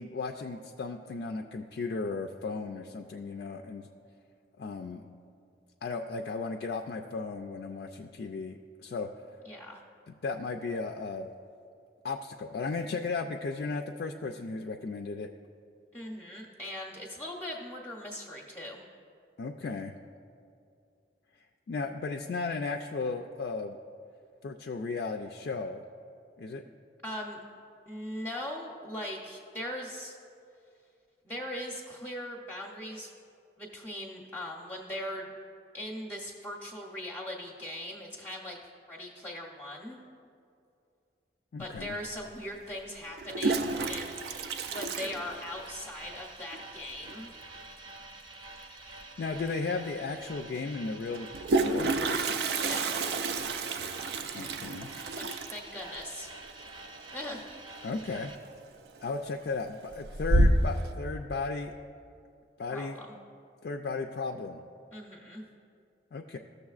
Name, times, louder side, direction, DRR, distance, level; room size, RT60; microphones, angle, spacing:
voice 1, 0.0-3.9 4.6-5.0 5.8-9.1 10.1-11.3 12.0-15.3 19.4-19.9 21.7-23.8 24.4-25.8 26.4-26.6 41.5-42.0 48.9-51.9 54.3-54.9 57.8-58.3 59.0-61.7 62.6-63.0 63.6-64.6 66.1-66.4, left 4 dB, 60° left, 3 dB, 0.3 m, -35 dB
voice 2, 9.4-9.8 15.9-18.8 27.0-27.4 27.9-30.2 31.2-33.1 33.6-35.3 35.7-38.6 38.9-40.0 41.6-44.2 44.7-47.3 52.3-53.0 55.1-56.3 57.1-57.4 62.7-63.2 64.9-65.4, left 1 dB, 10° left, -3 dB, 0.6 m, -40 dB
Toilet flush, 41.8-41.9 43.1-45.9 46.1-46.2 46.5-46.6 46.9-47.3 49.0-49.1 49.5-49.6 51.1-57.8 58.1-58.5 59.0-59.5 59.9-60.9, right 2 dB, 65° right, 0.4 m, -29 dB
sound 1, 43.6-58.4, right 2 dB, 25° right, 0.7 m, -48 dB
15.0 x 6.7 x 2.4 m, 2.5 s
head